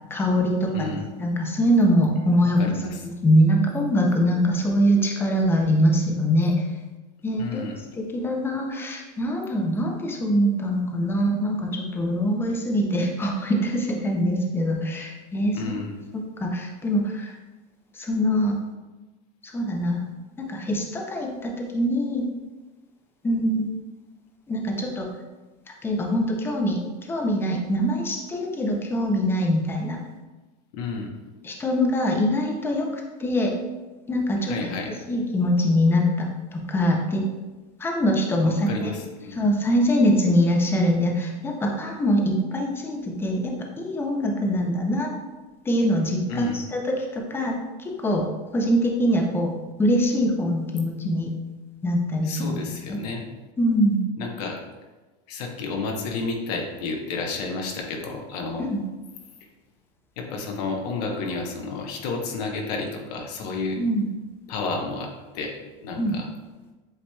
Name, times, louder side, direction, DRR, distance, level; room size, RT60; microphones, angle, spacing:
voice 1, 0.1-0.9 1.2-2.6 3.0-6.7 7.2-7.6 7.9-15.7 16.1-17.4 17.9-18.6 19.4-20.0 20.4-22.2 23.2-23.7 24.5-25.1 25.7-26.8 27.1-30.0 31.4-32.9 33.2-33.5 34.1-34.7 35.1-37.2 37.8-39.0 39.3-45.1 45.7-48.3 48.5-49.5 49.8-51.3 51.8-52.6 52.9-53.0 53.6-54.0 58.6-58.8 63.8-64.0 66.0-66.2, equal, 10° left, 2 dB, 0.5 m, -23 dB
voice 2, 0.7-1.0 2.6-2.9 7.4-7.8 15.5-16.0 30.7-31.1 34.4-34.9 38.4-39.3 46.3-46.6 52.2-53.2 54.2-54.6 55.3-58.7 60.2-63.8 64.5-65.5 65.8-66.3, left 3 dB, 75° left, 2 dB, 0.9 m, -31 dB
7.8 x 2.9 x 2.3 m, 1.2 s
supercardioid pair, 145°, 21 cm